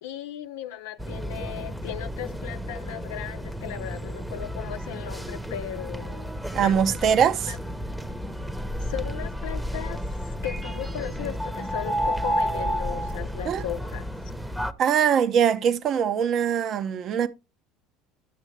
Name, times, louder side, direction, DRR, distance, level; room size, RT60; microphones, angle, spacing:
voice 1, 0.0-6.3 6.6-7.1 7.5-7.6 8.8-14.1, left 12 dB, 80° left, 0.6 m, -37 dB
sound 1, 1.0-14.7, equal, 5° right, 1.0 m, -31 dB
voice 2, 6.5-7.5 13.5-13.6 14.8-17.3, right 8 dB, 50° right, 0.8 m, -22 dB
12.0 x 6.3 x 3.2 m
hypercardioid pair, 85°, 0 cm